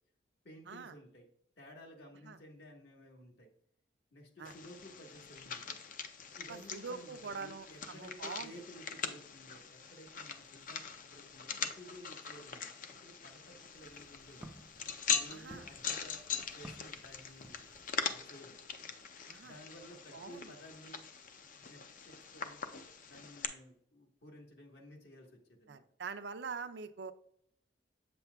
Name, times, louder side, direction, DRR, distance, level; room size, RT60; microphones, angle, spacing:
voice 1, 0.4-1.3 1.6-3.5 4.1-5.8 6.3-10.8 11.1-14.5 15.1-17.6 18.1-18.6 19.4-21.0 21.3-22.6 23.0-25.8, equal, 65° left, 1 dB, 1.4 m, -54 dB
sound 1, 4.4-23.4, left 6 dB, 45° left, 0.5 m, -42 dB
voice 2, 6.5-8.5 15.3-15.6 19.3-19.6 20.1-20.5 25.7-27.1, right 5 dB, 70° right, 9 dB, 0.5 m, -44 dB
Walk footsteps, 13.6-18.1, right 1 dB, 5° right, 0.5 m, -56 dB
7.8 x 6.9 x 2.3 m, 0.66 s
head